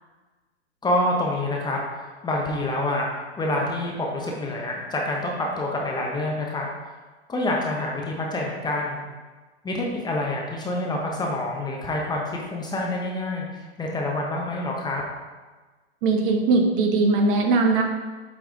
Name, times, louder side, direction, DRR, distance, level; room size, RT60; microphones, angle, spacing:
voice 1, 0.8-3.1 3.4-6.9 7.3-9.0 9.6-15.0, left 1 dB, 10° left, -2 dB, 0.8 m, -27 dB
voice 2, 16.0-17.8, right 3 dB, 50° right, 3 dB, 1.2 m, -20 dB
8.4 x 3.4 x 3.9 m, 1.3 s
hypercardioid pair, 115°, 34 cm